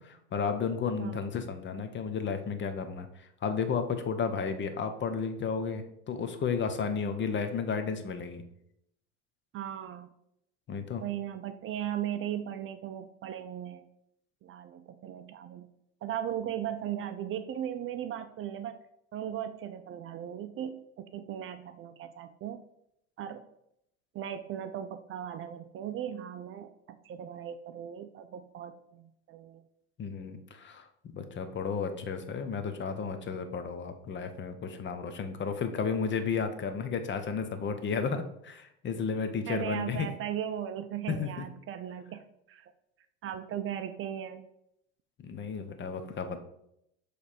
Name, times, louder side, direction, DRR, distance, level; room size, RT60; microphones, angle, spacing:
voice 1, 0.0-8.4 10.7-11.0 30.0-30.9 31.1-40.1 41.1-41.5 45.2-46.4, left 5 dB, 30° left, 8 dB, 0.8 m, -33 dB
voice 2, 9.5-10.1 11.0-13.9 14.4-15.7 16.0-18.8 19.1-22.6 23.2-23.4 24.1-29.6 39.5-42.2 42.5-42.7 43.2-44.5, right 10 dB, 35° right, 10 dB, 0.5 m, -37 dB
6.8 x 3.3 x 4.4 m, 0.77 s
hypercardioid pair, 90°, 36 cm